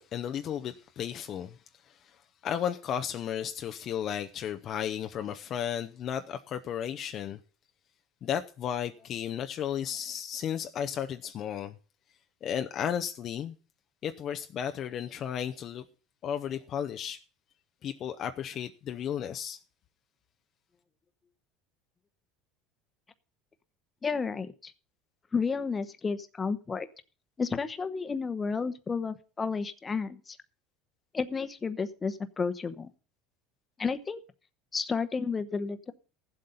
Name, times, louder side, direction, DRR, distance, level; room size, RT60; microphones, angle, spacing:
voice 1, 0.0-1.6 1.8-2.2 2.4-7.4 8.2-11.7 12.4-13.6 14.0-15.8 16.2-17.2 17.8-19.6, left 9 dB, 45° left, 0.7 m, -34 dB
voice 2, 24.0-24.7 25.3-26.9 27.4-30.4 31.1-32.9 33.8-34.2 34.7-35.9, left 5 dB, 25° left, 1.0 m, -32 dB
14.5 x 7.8 x 5.5 m
supercardioid pair, 110°, 0 cm